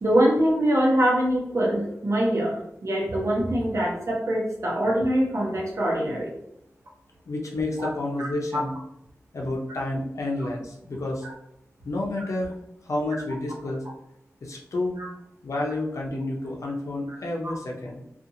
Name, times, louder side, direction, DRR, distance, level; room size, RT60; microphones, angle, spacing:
voice 1, 0.0-6.3 8.2-8.3 8.5-8.6 11.2-11.3 15.0-15.1 17.1-17.2 17.4-17.5, right 1 dB, 65° right, -3 dB, 0.9 m, -23 dB
voice 2, 7.3-8.7 9.3-11.3 11.8-12.5 12.8-13.8 14.4-15.0 15.4-18.0, left 2 dB, 75° left, -1 dB, 0.6 m, -30 dB
2.6 x 2.5 x 2.8 m, 0.76 s
wide cardioid pair, 95°, 5 cm